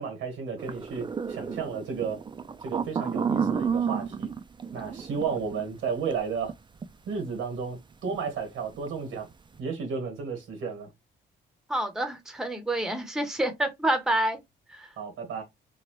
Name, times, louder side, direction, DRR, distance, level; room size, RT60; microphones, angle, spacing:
voice 1, 0.0-2.2 2.6-4.3 4.7-6.5 7.1-9.3 9.6-10.9 15.0-15.4, right 5 dB, 90° right, 1.5 m, -33 dB
sound 1, 0.6-6.5 6.8-6.9 8.1-8.3 8.6-8.9, right 6 dB, 25° right, 0.4 m, -31 dB
voice 2, 11.7-14.4 14.7-14.9, right 1 dB, ahead, 0.7 m, -28 dB
3.0 x 2.4 x 3.0 m
cardioid pair, 90°, 20 cm